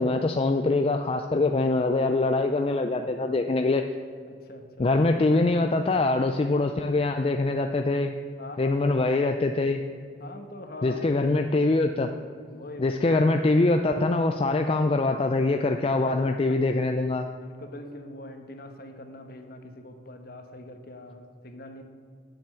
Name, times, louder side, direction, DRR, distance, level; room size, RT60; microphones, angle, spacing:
voice 1, 0.0-3.8 4.8-8.1 8.6-9.8 10.8-12.1 12.8-17.3, left 2 dB, 30° left, 5 dB, 0.4 m, -23 dB
voice 2, 2.6-3.1 4.3-5.0 7.9-8.1 8.4-9.2 10.2-11.1 12.5-13.2 15.8-16.6 17.4-21.8, left 2 dB, 55° left, 6 dB, 1.1 m, -43 dB
9.3 x 7.1 x 7.6 m, 2.2 s
head